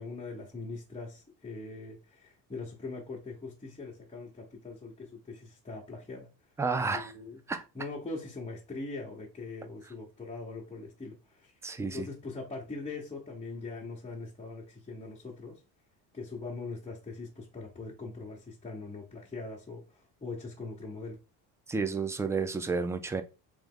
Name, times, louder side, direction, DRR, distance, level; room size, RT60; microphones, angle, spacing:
voice 1, 0.0-6.3 6.7-7.4 7.7-15.6 16.1-21.1, left 3 dB, 15° left, 0.9 m, -42 dB
voice 2, 6.6-7.1 7.5-7.6 11.6-12.1 21.7-23.2, right 4 dB, 5° right, 0.4 m, -31 dB
3.4 x 3.1 x 3.7 m
cardioid pair, 105°, 41 cm